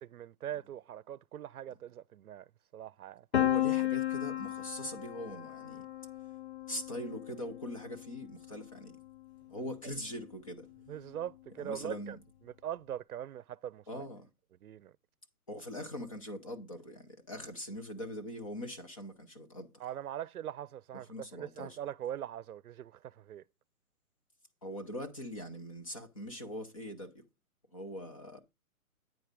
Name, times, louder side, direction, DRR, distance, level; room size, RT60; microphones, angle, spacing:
voice 1, 0.0-2.5 2.7-3.3 9.6-9.7 10.9-12.2 12.4-14.0 14.6-14.9 19.8-21.1 21.3-23.4, right 11 dB, 80° right, 0.6 m, -42 dB
Piano, 3.3-9.1, left 13 dB, 50° left, 0.4 m, -35 dB
voice 2, 3.3-5.9 6.7-9.0 9.5-10.7 11.6-12.2 13.9-14.3 15.5-19.7 21.1-21.8 24.6-27.2 27.7-28.4, equal, 25° left, 0.8 m, -42 dB
9.3 x 4.6 x 5.1 m
hypercardioid pair, 175°, 43 cm